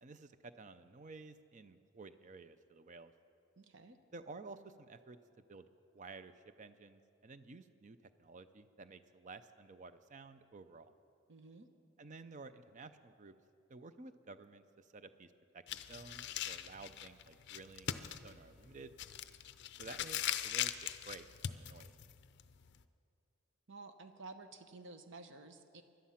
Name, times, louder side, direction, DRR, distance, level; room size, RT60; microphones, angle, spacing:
voice 1, 0.0-3.1 4.1-5.2 5.5-5.7 5.9-10.9 12.0-13.3 13.7-15.6 15.9-19.0 19.8-21.9, right 3 dB, 35° right, 12 dB, 0.5 m, -53 dB
voice 2, 3.6-4.0 11.3-11.7 23.7-25.8, right 3 dB, 60° right, 9 dB, 0.9 m, -52 dB
sound 1, 15.7-22.8, left 10 dB, 50° left, 0.5 m, -41 dB
17.5 x 11.5 x 5.8 m, 2.6 s
head